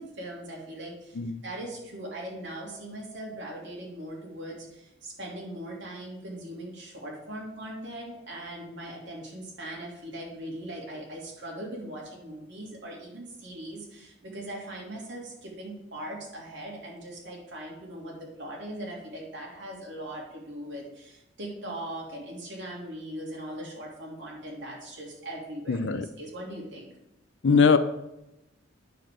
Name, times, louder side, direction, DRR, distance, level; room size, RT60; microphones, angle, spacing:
voice 1, 0.0-1.2 1.4-26.9, right 1 dB, 70° right, -3 dB, 3.0 m, -40 dB
voice 2, 25.7-26.1 27.4-27.8, left 5 dB, 75° left, 10 dB, 0.6 m, -21 dB
9.3 x 6.8 x 3.7 m, 0.89 s
head